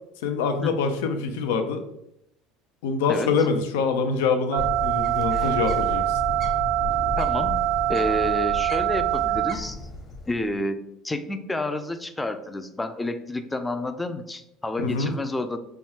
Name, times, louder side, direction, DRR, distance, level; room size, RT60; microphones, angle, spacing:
voice 1, 0.2-1.8 2.8-6.2 14.8-15.1, left 5 dB, 80° left, 7 dB, 0.5 m, -25 dB
sound 1, 4.5-9.5, right 14 dB, 60° right, 0.7 m, -24 dB
Bird, 4.6-10.5, left 4 dB, 40° left, 1.1 m, -34 dB
voice 2, 7.2-7.6 7.9-9.8 10.3-10.8 11.0-15.6, left 2 dB, 15° left, 9 dB, 0.4 m, -29 dB
4.2 x 2.3 x 3.6 m, 0.81 s
supercardioid pair, 90°, 0 cm